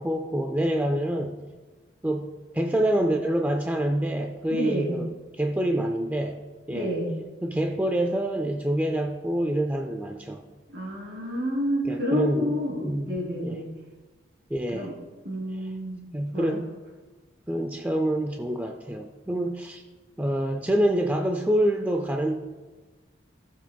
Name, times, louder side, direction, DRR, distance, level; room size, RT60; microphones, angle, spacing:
voice 1, 0.0-1.4 2.0-5.1 5.3-6.4 6.7-6.9 7.4-10.4 11.8-13.2 13.4-13.6 14.5-14.9 15.5-15.7 16.1-16.7 17.5-19.8 20.2-22.3, right 1 dB, 10° right, 4 dB, 0.4 m, -26 dB
voice 2, 4.5-5.0 6.7-7.1 10.7-13.7 14.7-14.9 15.2-16.1 16.3-16.6, equal, 55° right, -2 dB, 3.2 m, -29 dB
16.5 x 7.4 x 2.3 m, 1.3 s
head